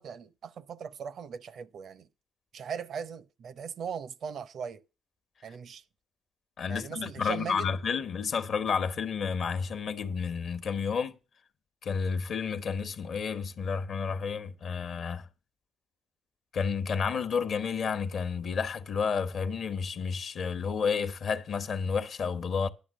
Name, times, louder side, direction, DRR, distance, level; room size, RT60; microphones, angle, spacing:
voice 1, 0.0-2.1 2.5-4.8 5.4-5.8 6.7-7.7, right 7 dB, 65° right, 0.7 m, -39 dB
voice 2, 6.6-11.2 11.8-15.3 16.5-22.7, left 6 dB, 65° left, 1.0 m, -31 dB
10.5 x 6.3 x 6.3 m
supercardioid pair, 60°, 0 cm